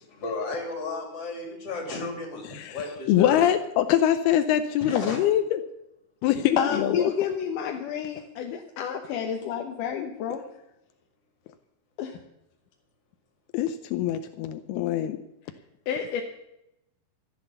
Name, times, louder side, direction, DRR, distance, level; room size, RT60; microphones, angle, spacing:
voice 1, 0.2-3.4 4.9-5.2, left 3 dB, 40° left, 1 dB, 4.2 m, -33 dB
voice 2, 2.5-5.6 6.2-7.1 13.5-15.2, left 11 dB, 85° left, 9 dB, 2.7 m, -24 dB
voice 3, 6.6-10.4 12.0-12.2 15.9-16.2, left 8 dB, 70° left, 3 dB, 2.2 m, -29 dB
14.5 x 9.7 x 6.9 m, 0.86 s
omnidirectional pair, 4.4 m